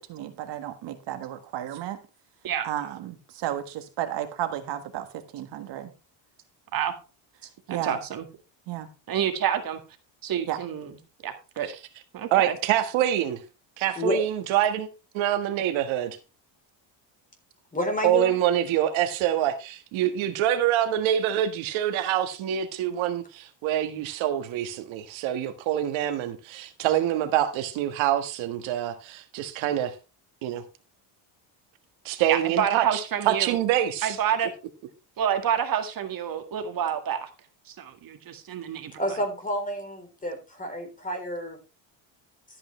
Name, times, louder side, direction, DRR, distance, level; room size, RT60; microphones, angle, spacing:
voice 1, 0.0-2.0 2.6-5.9 7.7-8.0 8.7-8.9 10.5-10.6, right 11 dB, 65° right, 1.6 m, -33 dB
voice 2, 7.7-8.3 9.1-9.8 10.2-10.9 11.2-11.7 12.1-12.6 32.3-33.6 34.0-34.5 35.2-37.3 37.7-39.0, right 9 dB, 45° right, 1.9 m, -28 dB
voice 3, 12.3-13.4 13.8-14.9 15.1-16.2 18.0-29.9 30.4-30.6 32.0-33.0 33.2-34.2, right 11 dB, 80° right, 1.7 m, -25 dB
voice 4, 17.7-18.4 39.0-41.6, left 1 dB, 15° left, 3.8 m, -29 dB
13.5 x 8.6 x 3.2 m
cardioid pair, 130°, 47 cm